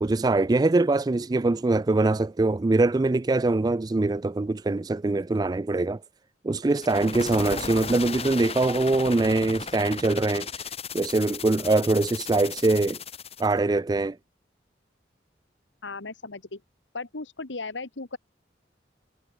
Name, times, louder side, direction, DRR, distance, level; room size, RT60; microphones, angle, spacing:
voice 1, 0.0-6.0 6.4-13.0 13.4-14.2, right 2 dB, 20° right, 0.3 m, -23 dB
sound 1, 6.7-13.5, left 5 dB, 35° left, 4.3 m, -36 dB
voice 2, 15.8-16.6 16.9-18.2, left 3 dB, 85° left, 1.6 m, -36 dB
head